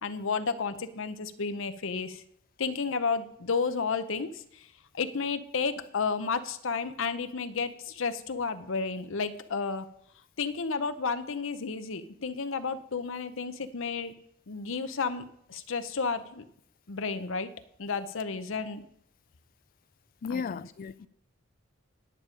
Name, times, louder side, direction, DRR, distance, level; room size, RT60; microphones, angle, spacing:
voice 1, 0.0-2.2 2.6-4.3 5.0-9.9 10.4-14.1 14.5-15.2 15.5-16.4 16.9-17.5 17.8-18.8 20.3-20.6, left 5 dB, 65° left, 0.7 m, -32 dB
voice 2, 20.2-21.1, left 5 dB, 40° left, 0.3 m, -35 dB
10.0 x 9.0 x 5.1 m
head